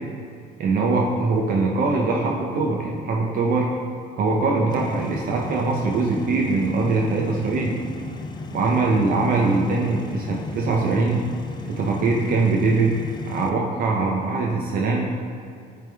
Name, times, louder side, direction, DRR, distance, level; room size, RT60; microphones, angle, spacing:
voice 1, 0.6-3.7 4.2-7.8 8.5-11.2 11.7-13.0 13.3-15.1, right 3 dB, 60° right, -2 dB, 0.7 m, -22 dB
sound 1, 4.7-13.5, left 3 dB, 25° left, 0.4 m, -35 dB
9.2 x 3.5 x 3.4 m, 2.3 s
cardioid pair, 110°, 17 cm